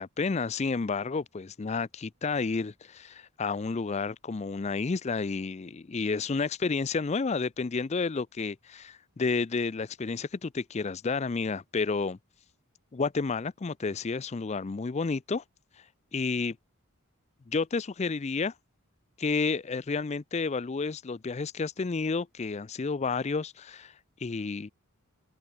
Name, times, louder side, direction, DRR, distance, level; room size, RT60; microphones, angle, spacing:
voice 1, 0.0-12.2 12.9-15.4 16.1-16.6 17.5-18.5 19.2-23.9 24.2-24.7, left 4 dB, 30° left, 0.4 m, -31 dB
head